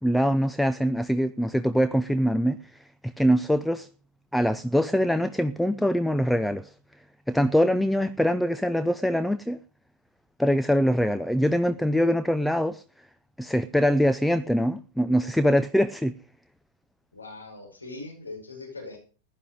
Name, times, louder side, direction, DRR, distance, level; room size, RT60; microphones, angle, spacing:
voice 1, 0.0-3.9 4.3-6.7 7.3-9.6 10.4-12.8 13.4-16.2, equal, ahead, 0.6 m, -23 dB
voice 2, 17.1-19.0, left 3 dB, 80° left, 5.4 m, -40 dB
15.5 x 11.0 x 5.3 m
figure-of-eight pair, 90°, 0 cm